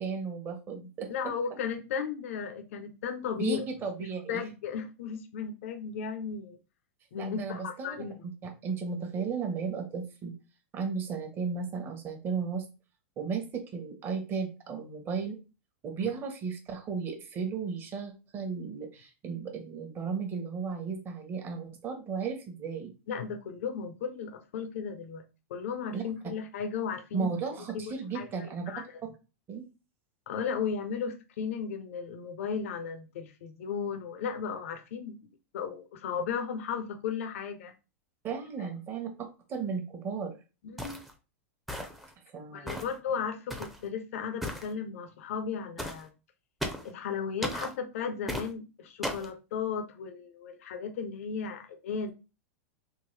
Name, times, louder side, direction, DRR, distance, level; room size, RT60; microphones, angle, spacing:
voice 1, 0.0-1.1 3.4-4.5 7.2-8.0 8.2-10.3 10.7-12.6 13.2-15.4 15.8-22.9 25.9-26.0 27.1-29.1 29.5-29.7 38.2-40.3 42.3-42.8, right 5 dB, 30° right, 5 dB, 0.9 m, -35 dB
voice 2, 1.1-3.6 4.3-6.6 7.1-8.1 16.0-16.1 23.1-25.2 25.5-27.3 27.7-28.8 30.3-35.2 35.5-37.7 40.6-41.0 42.5-46.1 46.8-52.1, left 6 dB, 75° left, 8 dB, 0.6 m, -35 dB
sound 1, 40.8-41.1 41.7-42.1 42.7-43.0 43.5-43.8 44.4-44.7 45.8-46.0 46.6-46.9 47.4-47.7 48.3-48.5 49.0-49.3, equal, ahead, 0.6 m, -35 dB
3.7 x 2.5 x 3.2 m, 0.31 s
hypercardioid pair, 125°, 7 cm